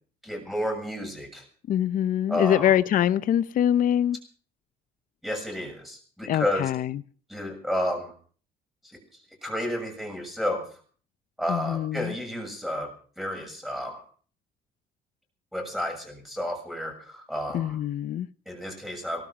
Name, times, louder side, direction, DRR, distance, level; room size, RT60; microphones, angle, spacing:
voice 1, 0.2-1.4 2.3-2.7 5.2-6.7 7.3-8.1 9.4-10.6 11.4-14.0 15.5-17.8 18.4-19.2, equal, ahead, 6.9 m, -31 dB
voice 2, 1.7-4.2 6.3-7.0 11.5-12.1 17.5-18.3, left 10 dB, 55° left, 0.7 m, -24 dB
18.5 x 13.0 x 6.0 m
cardioid pair, 110°, 17 cm